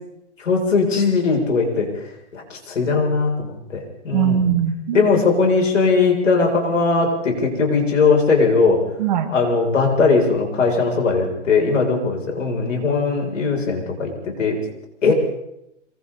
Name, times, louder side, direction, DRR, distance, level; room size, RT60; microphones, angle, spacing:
voice 1, 0.4-1.9 2.3-4.5 4.9-8.8 9.3-14.6 15.0-15.1, left 4 dB, 75° left, 1 dB, 7.5 m, -19 dB
voice 2, 4.1-5.0 9.0-9.3 15.1-15.2, right 10 dB, 35° right, 4 dB, 2.6 m, -20 dB
27.0 x 24.5 x 4.2 m, 0.83 s
hypercardioid pair, 170°, 38 cm